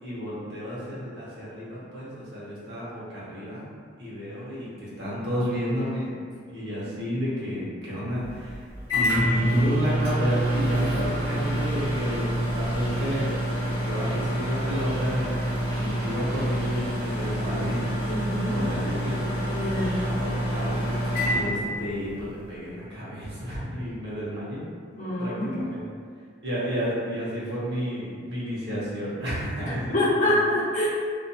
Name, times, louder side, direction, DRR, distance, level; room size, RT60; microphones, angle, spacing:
voice 1, 0.0-3.6 4.0-6.1 6.5-8.6 8.9-13.3 13.7-15.3 15.7-17.9 18.5-19.2 20.0-20.7 21.2-24.6 25.2-25.8 26.4-30.3, equal, 65° right, -8 dB, 0.9 m, -31 dB
Microwave oven, 8.2-22.2, equal, 20° left, 1.1 m, -27 dB
voice 2, 18.1-18.6 19.5-20.0 24.9-25.6 29.7-30.9, left 1 dB, 40° left, -8 dB, 0.6 m, -26 dB
2.7 x 2.4 x 2.3 m, 2.1 s
head